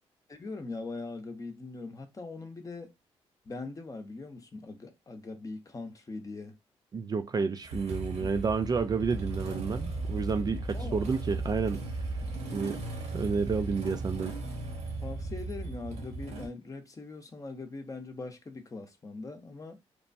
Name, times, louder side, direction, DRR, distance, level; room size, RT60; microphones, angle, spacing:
voice 1, 0.3-2.9 3.5-6.6 8.2-8.3 10.7-11.1 15.0-19.8, left 3 dB, 30° left, 0.7 m, -41 dB
voice 2, 6.9-11.8 12.5-12.8 13.1-14.3, right 5 dB, 35° right, 0.3 m, -30 dB
Motorcycle / Engine starting, 7.6-16.5, right 2 dB, 80° right, 1.0 m, -36 dB
3.1 x 2.1 x 2.5 m
cardioid pair, 75°, 11 cm